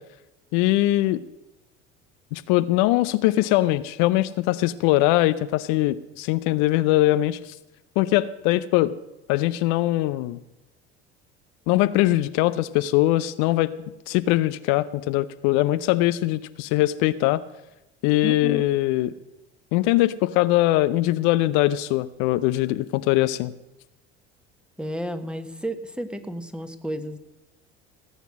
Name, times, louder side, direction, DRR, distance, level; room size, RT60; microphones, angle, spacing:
voice 1, 0.5-1.2 2.3-7.5 8.0-8.9 9.3-10.4 11.7-13.7 14.1-17.4 18.0-19.1 19.7-23.5, left 16 dB, 60° left, 13 dB, 0.6 m, -21 dB
voice 2, 18.2-18.7 24.8-27.2, equal, 5° right, 9 dB, 1.4 m, -32 dB
17.5 x 8.2 x 6.2 m, 0.96 s
hypercardioid pair, 70°, 33 cm